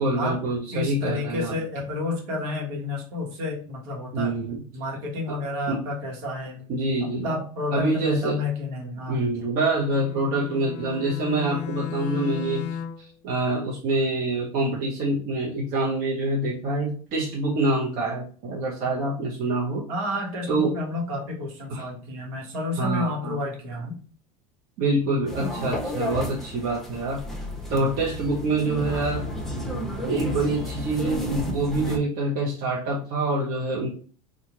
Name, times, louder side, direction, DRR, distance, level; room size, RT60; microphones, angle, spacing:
voice 1, 0.0-1.5 4.1-4.6 5.3-5.4 5.7-5.8 6.7-7.3 7.7-8.4 9.1-12.7 13.0-19.9 20.5-20.8 21.7-21.9 22.8-23.4 24.8-27.2 27.7-29.2 30.1-33.9, right 2 dB, 50° right, -4 dB, 1.0 m, -26 dB
voice 2, 0.7-4.3 4.7-6.6 7.0-9.2 19.9-24.0, left 2 dB, 70° right, 0 dB, 1.3 m, -30 dB
Bowed string instrument, 9.7-13.1, left 7 dB, 60° left, 0.5 m, -35 dB
sound 1, 25.3-32.0, equal, ahead, 0.9 m, -32 dB
2.9 x 2.5 x 3.8 m, 0.42 s
hypercardioid pair, 85°, 19 cm